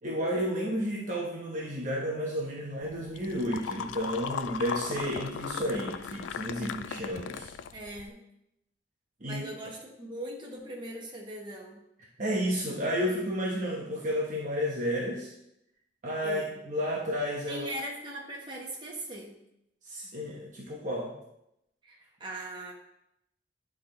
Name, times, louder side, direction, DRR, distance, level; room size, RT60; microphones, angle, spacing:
voice 1, 0.0-7.5 9.2-9.4 12.2-15.3 16.0-17.7 19.8-21.1, equal, 45° right, -3 dB, 1.1 m, -31 dB
sound 1, 2.8-8.1, left 7 dB, 85° left, 0.3 m, -38 dB
voice 2, 7.7-8.2 9.2-11.8 16.2-16.5 17.5-19.4 21.8-22.7, right 1 dB, 25° right, -3 dB, 1.4 m, -40 dB
9.4 x 3.7 x 3.9 m, 0.80 s
head